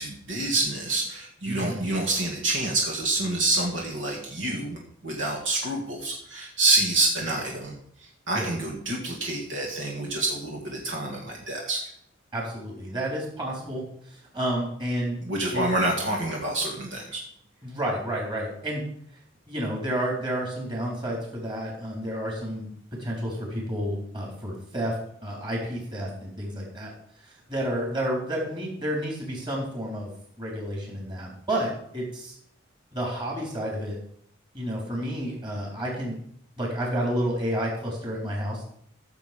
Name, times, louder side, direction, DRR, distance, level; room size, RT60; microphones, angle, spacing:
voice 1, 0.0-7.7 8.0-11.8 15.2-17.2, right 2 dB, 65° right, -1 dB, 1.9 m, -27 dB
voice 2, 1.5-1.9 8.3-8.5 12.3-15.2 15.5-15.6 17.6-18.8 19.5-22.7 23.0-24.9 25.2-26.9 27.2-30.1 30.4-32.4 32.9-34.0 34.5-36.2 36.6-38.7, equal, 25° right, -2 dB, 4.0 m, -30 dB
14.5 x 7.2 x 5.2 m, 0.67 s
head